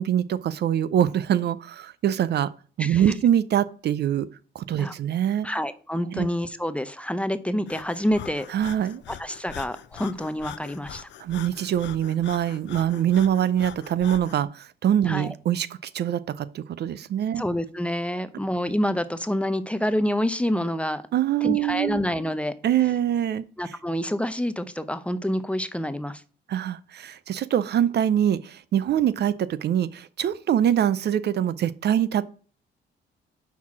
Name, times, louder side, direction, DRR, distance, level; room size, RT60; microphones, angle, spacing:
voice 1, 0.0-2.5 2.8-4.3 4.5-5.5 6.1-6.3 8.5-9.0 11.2-17.4 21.1-22.0 22.6-23.8 26.5-32.2, right 10 dB, 55° right, 0.5 m, -24 dB
voice 2, 5.4-8.5 9.2-11.1 15.1-15.3 17.4-21.0 21.4-22.5 23.6-26.2, equal, 5° left, 0.6 m, -27 dB
Breathing, 7.7-14.4, left 10 dB, 65° left, 0.6 m, -42 dB
5.7 x 4.6 x 5.9 m
cardioid pair, 90°, 20 cm